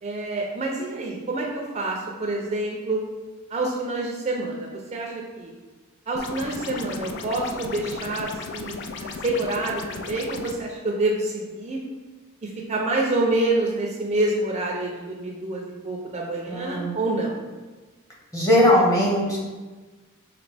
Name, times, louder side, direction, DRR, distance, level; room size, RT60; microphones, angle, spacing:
voice 1, 0.0-3.0 3.5-5.5 6.1-8.7 9.0-11.8 12.4-17.3, right 2 dB, 30° right, -1 dB, 0.5 m, -27 dB
sound 1, 6.2-10.6, left 4 dB, 55° left, 0.3 m, -35 dB
voice 2, 16.5-16.9 18.3-19.4, left 1 dB, 15° left, -4 dB, 1.0 m, -19 dB
5.1 x 2.8 x 3.3 m, 1.3 s
head